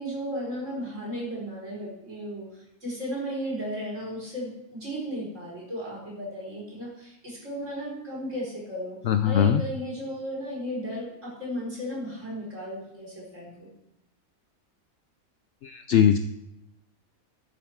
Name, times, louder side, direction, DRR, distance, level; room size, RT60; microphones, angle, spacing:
voice 1, 0.0-9.0 9.2-13.7, equal, 60° right, -4 dB, 5.3 m, -35 dB
voice 2, 9.1-9.6 15.6-16.2, left 9 dB, 65° left, 10 dB, 0.8 m, -20 dB
13.0 x 7.3 x 4.6 m, 0.83 s
omnidirectional pair, 1.4 m